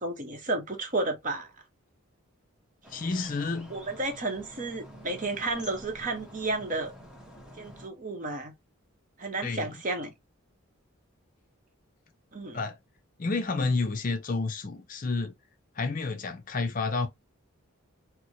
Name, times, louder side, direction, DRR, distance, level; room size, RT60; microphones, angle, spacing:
voice 1, 0.0-1.5 3.7-6.9 7.6-8.5 9.2-10.1 12.3-12.6, right 2 dB, 35° right, 0.8 m, -32 dB
sound 1, 2.8-7.9, equal, 5° right, 0.8 m, -48 dB
voice 2, 2.9-3.7 9.4-9.8 12.5-12.8 13.2-15.3 15.7-17.1, left 3 dB, 40° left, 0.5 m, -30 dB
4.5 x 2.0 x 2.6 m
head